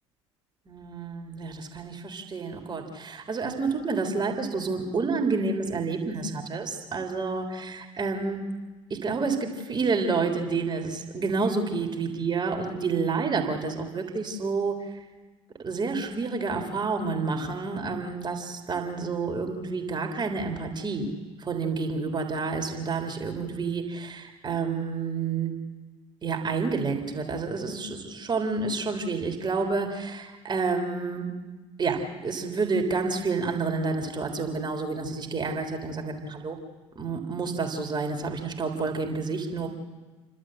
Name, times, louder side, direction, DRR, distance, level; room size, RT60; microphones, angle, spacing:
voice 1, 0.7-8.4 8.9-15.0 15.6-21.1 21.4-25.5 26.2-31.3 31.8-36.6 37.0-39.7, right 4 dB, 30° right, 3 dB, 3.6 m, -29 dB
29.5 x 12.5 x 7.7 m, 1.3 s
hypercardioid pair, 65°, 16 cm